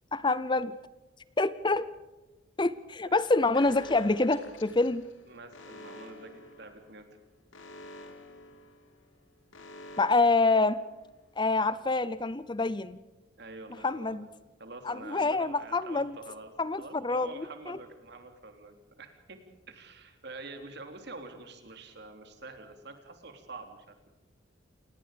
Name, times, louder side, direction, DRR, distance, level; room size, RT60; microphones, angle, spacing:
voice 1, 0.1-0.7 1.4-1.9 2.6-5.0 10.0-10.8 11.4-13.0 13.8-14.3 14.8-16.2 16.6-17.8, left 3 dB, 25° left, 16 dB, 0.6 m, -26 dB
Alarm, 3.5-11.3, left 1 dB, 75° left, 2.6 m, -49 dB
voice 2, 5.3-7.1 13.4-14.2 14.6-16.5 16.8-24.1, right 3 dB, 55° right, 6 dB, 3.4 m, -46 dB
29.0 x 19.0 x 5.2 m, 1.1 s
head